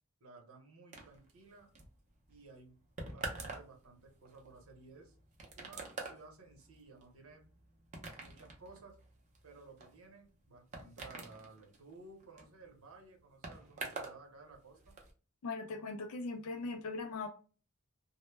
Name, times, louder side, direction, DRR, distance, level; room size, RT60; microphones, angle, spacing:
voice 1, 0.2-1.7 2.3-2.8 3.1-5.2 5.6-7.4 8.2-9.0 9.4-15.0, right 3 dB, 75° right, 0.7 m, -56 dB
sound 1, 0.9-14.2 14.5-15.1, right 3 dB, 35° right, 0.5 m, -47 dB
voice 2, 15.4-17.3, left 3 dB, 75° left, 0.3 m, -40 dB
2.1 x 2.0 x 3.1 m
head